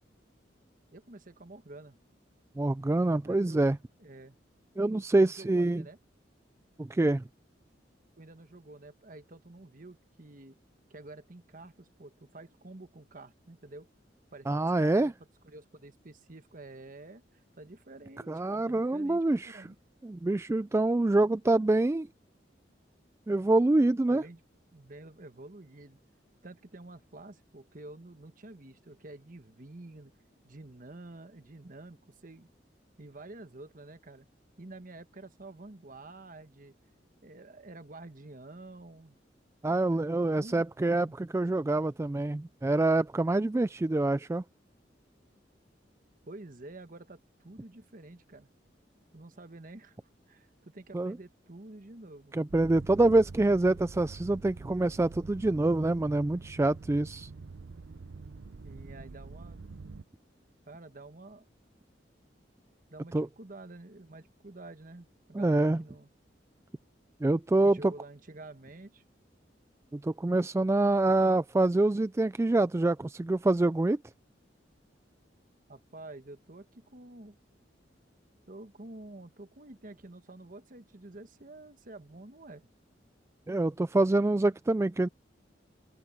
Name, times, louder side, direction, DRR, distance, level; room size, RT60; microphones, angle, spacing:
voice 1, 0.9-2.0 3.2-3.7 4.0-4.4 4.9-6.0 8.2-10.6 10.9-13.9 14.3-19.8 24.1-24.4 24.7-26.0 26.4-30.1 30.4-32.5 33.0-34.3 34.6-36.8 37.2-39.2 39.6-40.0 40.3-41.2 46.3-48.5 49.1-50.0 50.3-52.4 58.6-59.6 60.7-61.5 62.9-66.1 67.6-69.0 75.7-77.4 78.5-82.7, right 2 dB, 50° right, 1.3 m, -49 dB
voice 2, 2.6-3.8 4.8-5.8 6.8-7.2 14.5-15.1 18.3-19.7 20.0-22.1 23.3-24.2 39.6-44.4 50.9-51.2 52.3-57.3 63.1-63.3 65.3-65.8 67.2-67.9 69.9-74.0 83.5-85.1, right 2 dB, 15° right, 0.3 m, -26 dB
sound 1, 52.5-60.0, right 4 dB, 90° right, 0.6 m, -46 dB
open air
head